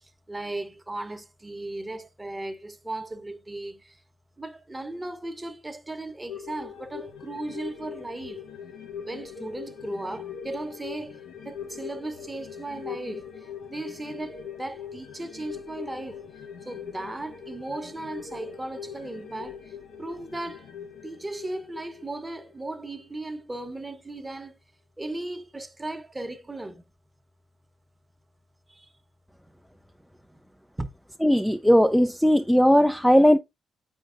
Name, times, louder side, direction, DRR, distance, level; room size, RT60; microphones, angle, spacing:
voice 1, 0.3-4.0 4.4-8.4 9.1-11.2 11.4-13.3 13.7-16.2 16.6-19.7 20.0-20.7 21.0-24.6 25.0-26.8 28.7-28.9 30.8-30.9, right 2 dB, 15° right, 0.9 m, -36 dB
sound 1, 6.3-23.1 23.4-23.5, left 7 dB, 90° left, 0.9 m, -41 dB
voice 2, 31.2-33.4, equal, ahead, 0.4 m, -18 dB
8.1 x 5.3 x 2.5 m
cardioid pair, 85°, 0 cm